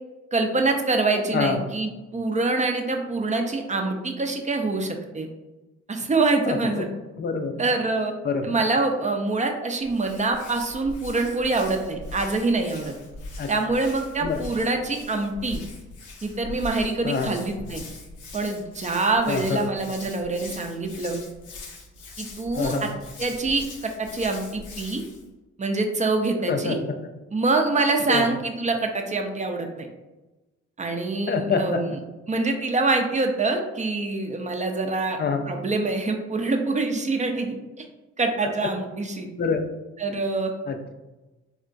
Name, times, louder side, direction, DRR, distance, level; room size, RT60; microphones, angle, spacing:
voice 1, 0.3-5.3 5.9-6.9 7.6-8.1 8.4-12.9 13.5-15.6 16.2-17.8 18.3-21.2 22.2-22.9 23.2-25.0 25.6-26.8 27.3-29.9 30.8-32.0 32.3-37.8 38.2-39.3 40.0-40.5, right 3 dB, 25° right, 3 dB, 0.5 m, -25 dB
voice 2, 1.3-1.6 6.5-6.8 7.2-7.6 8.2-8.5 13.4-13.5 14.2-14.4 17.0-17.4 19.3-19.6 22.5-22.9 26.5-26.9 28.1-28.3 31.3-31.8 35.2-35.4 39.4-39.7 40.7-40.9, left 5 dB, 35° left, 6 dB, 0.5 m, -26 dB
Hands, 9.8-25.3, left 3 dB, 80° left, 0.6 m, -41 dB
3.6 x 2.1 x 2.5 m, 1.1 s
supercardioid pair, 50°, 30 cm